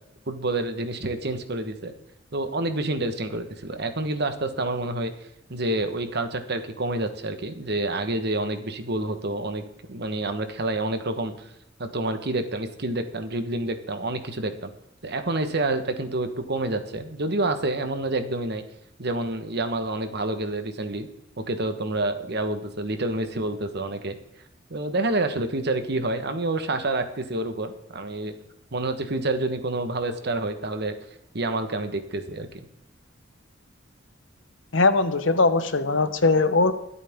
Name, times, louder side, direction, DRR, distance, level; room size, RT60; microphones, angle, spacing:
voice 1, 0.3-1.9 2.3-5.1 5.5-11.3 11.8-14.7 15.0-18.6 19.0-21.1 21.5-24.2 24.7-28.3 28.7-31.0 31.3-32.7, right 2 dB, 60° right, 8 dB, 1.4 m, -28 dB
voice 2, 34.7-36.7, left 3 dB, 80° left, 11 dB, 1.1 m, -20 dB
23.0 x 8.5 x 3.7 m, 0.80 s
head